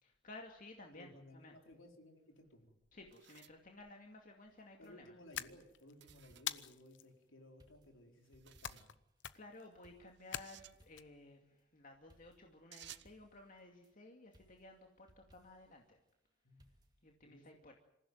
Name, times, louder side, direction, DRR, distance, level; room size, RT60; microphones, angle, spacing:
voice 1, 0.0-1.6 2.9-5.2 9.3-16.0 17.0-17.8, left 2 dB, 45° left, 2 dB, 2.4 m, -56 dB
voice 2, 0.9-2.7 4.8-8.9 16.4-16.7 17.2-17.4, left 1 dB, 85° left, 3 dB, 4.3 m, -59 dB
sound 1, 2.9-4.6 6.0-6.6 8.2-8.9 10.2-10.8 12.7-13.2, right 12 dB, 60° right, 1.0 m, -58 dB
sound 2, 4.5-4.9 5.3-6.8 7.1-7.2 7.6-9.4 9.8-11.3 12.1-13.9 14.3-15.8 16.6-17.1, equal, 20° right, 2.2 m, -69 dB
sound 3, 5.3-5.9 6.5-7.1 8.6-9.0 9.2-9.6 10.3-11.0, left 10 dB, 65° left, 0.9 m, -43 dB
26.5 x 15.5 x 9.4 m, 0.84 s
head